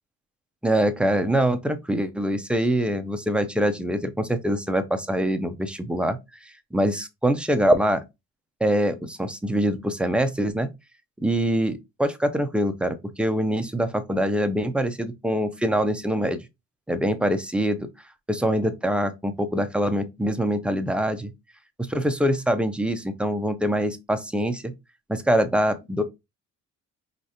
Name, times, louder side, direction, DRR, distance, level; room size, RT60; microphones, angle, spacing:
voice 1, 0.6-6.2 6.4-8.0 8.6-10.7 11.2-16.4 16.9-17.9 18.3-21.3 21.8-24.7 25.1-26.0, right 1 dB, 5° right, 0.4 m, -24 dB
5.0 x 3.1 x 2.8 m
cardioid pair, 165°, 30 cm